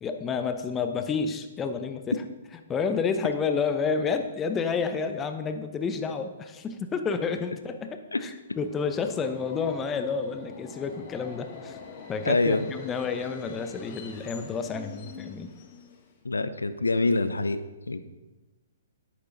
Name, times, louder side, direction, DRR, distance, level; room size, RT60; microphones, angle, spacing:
voice 1, 0.0-2.2 2.7-11.8 12.1-15.5, left 5 dB, 20° left, 8 dB, 0.8 m, -30 dB
Subway metro underground, 8.5-16.3, left 5 dB, 45° left, 1.4 m, -45 dB
voice 2, 12.3-12.7 16.2-17.6 17.9-18.0, left 3 dB, 90° left, 12 dB, 0.7 m, -25 dB
10.5 x 8.7 x 4.0 m, 1.2 s
hypercardioid pair, 130°, 0 cm